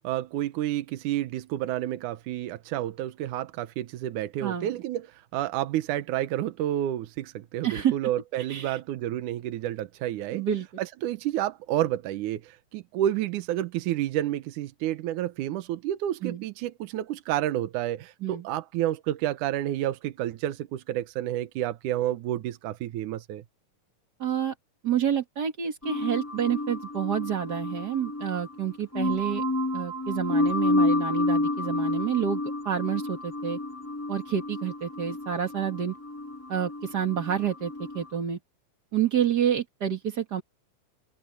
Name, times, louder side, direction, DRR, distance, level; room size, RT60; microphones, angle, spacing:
voice 1, 0.0-10.5 10.8-23.4, right 13 dB, 80° right, 2.4 m, -30 dB
voice 2, 7.6-7.9 8.5-8.8 10.3-10.7 16.2-16.4 18.2-18.4 24.2-24.5 24.8-29.4 29.7-32.4 32.7-33.6 34.1-35.9 36.5-38.4 38.9-40.4, right 9 dB, 40° right, 1.9 m, -28 dB
sound 1, 25.8-38.1, left 2 dB, 5° left, 4.9 m, -30 dB
omnidirectional pair, 3.5 m